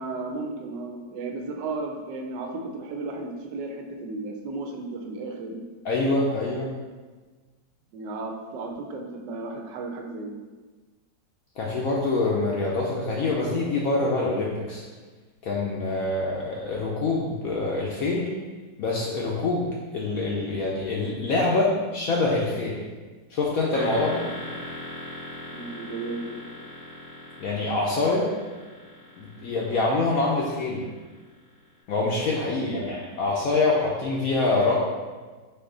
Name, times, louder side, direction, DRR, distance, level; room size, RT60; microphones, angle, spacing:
voice 1, 0.0-5.6 7.9-10.3 25.5-26.3 32.6-32.9, right 3 dB, 80° right, 3 dB, 1.2 m, -34 dB
voice 2, 5.8-6.7 11.6-14.8 15.4-18.3 18.8-19.7 19.9-22.8 23.3-24.2 27.4-28.3 29.2-30.8 31.9-34.7, left 3 dB, 75° left, -3 dB, 0.8 m, -25 dB
sound 1, 23.7-31.5, left 1 dB, 50° right, 0.9 m, -40 dB
4.3 x 2.7 x 3.7 m, 1.4 s
omnidirectional pair, 2.0 m